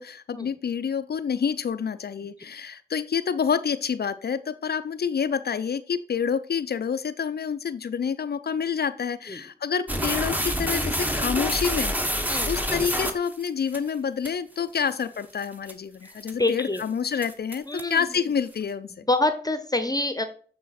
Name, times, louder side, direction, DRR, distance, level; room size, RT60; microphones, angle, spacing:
voice 1, 0.0-11.9 12.2-18.9, left 7 dB, 70° left, 12 dB, 0.4 m, -28 dB
sound 1, 9.9-13.8 14.3-14.4 14.9-15.0 15.4-15.7 16.2-16.5 16.8-16.9 17.2-18.0, equal, 10° right, 1.0 m, -27 dB
voice 2, 16.0-16.8 17.7-18.0 18.9-20.2, left 2 dB, 20° left, 10 dB, 0.8 m, -27 dB
8.5 x 4.0 x 4.1 m, 0.44 s
cardioid pair, 50°, 17 cm